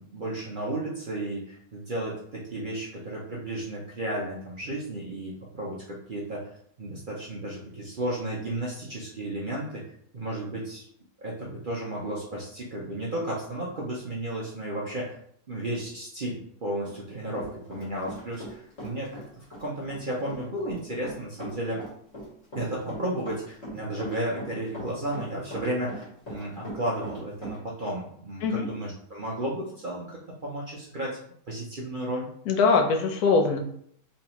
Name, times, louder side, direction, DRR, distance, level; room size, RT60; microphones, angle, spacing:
voice 1, 0.0-6.5 6.8-9.8 10.1-10.9 11.2-15.2 15.5-21.8 22.5-31.2 31.5-32.3, right 1 dB, 60° right, -4 dB, 0.5 m, -33 dB
Run, 16.8-18.5 18.8-27.6, equal, 40° left, 1.9 m, -40 dB
voice 2, 32.5-33.6, left 4 dB, 70° left, 4 dB, 1.1 m, -22 dB
3.5 x 3.1 x 2.9 m, 0.65 s
omnidirectional pair, 1.8 m